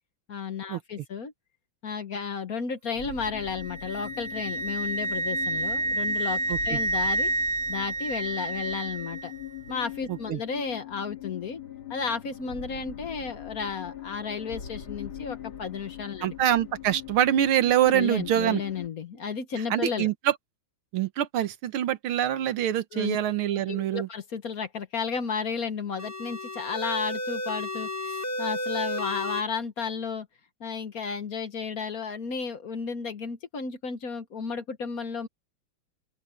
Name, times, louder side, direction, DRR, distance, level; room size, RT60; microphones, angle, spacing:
voice 1, 0.3-1.3 1.8-7.3 7.7-9.3 9.7-11.6 11.9-16.3 17.9-20.1 22.9-23.2 23.7-30.3 30.6-35.3, left 5 dB, 50° left, 1.4 m, -33 dB
sound 1, 3.0-18.9, left 9 dB, 80° left, 3.2 m, -42 dB
Wind instrument woodwind instrument, 3.4-9.3, right 2 dB, 40° right, 0.8 m, -29 dB
voice 2, 10.1-10.4 16.2-18.6 19.7-20.3 20.9-24.1, right 11 dB, 85° right, 1.9 m, -25 dB
sound 2, 26.0-29.4, left 1 dB, 10° left, 0.8 m, -32 dB
open air
omnidirectional pair, 2.2 m